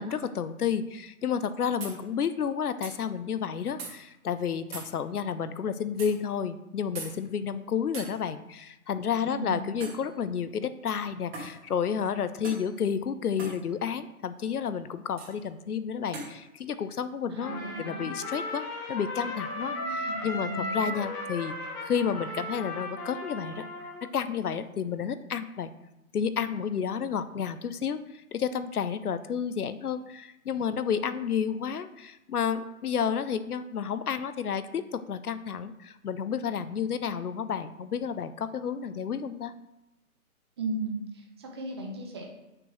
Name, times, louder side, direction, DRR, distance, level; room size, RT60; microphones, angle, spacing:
voice 1, 0.0-23.6 24.1-25.7 26.1-39.5, left 7 dB, 80° left, 12 dB, 0.7 m, -31 dB
sound 1, 1.3-1.4 1.8-2.0 2.8-3.0 3.8-3.9 4.7-4.9 6.0-6.1 6.9-7.1 7.9-8.1 9.8-10.0 11.3-11.5 12.4-12.7 13.4-13.6 15.2-15.3 16.1-16.3, right 3 dB, 40° right, 2.3 m, -39 dB
voice 2, 9.3-9.7 17.3-18.1 19.7-21.0 40.6-42.3, right 2 dB, 20° right, 1 dB, 0.7 m, -37 dB
Trumpet, 17.4-24.1, left 1 dB, 15° left, 0.9 m, -36 dB
6.1 x 4.6 x 6.5 m, 0.94 s
hypercardioid pair, 145°, 44 cm